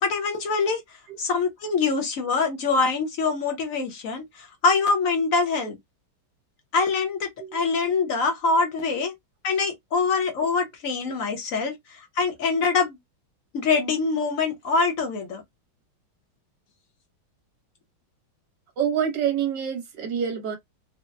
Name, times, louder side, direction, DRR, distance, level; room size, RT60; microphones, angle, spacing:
voice 1, 0.0-0.8 1.2-4.2 4.6-5.8 6.7-9.1 9.4-11.7 12.2-13.0 13.5-15.4, left 4 dB, 50° left, 1.1 m, -24 dB
voice 2, 18.8-20.6, right 8 dB, 60° right, 1.6 m, -27 dB
4.1 x 2.2 x 2.2 m
omnidirectional pair, 2.2 m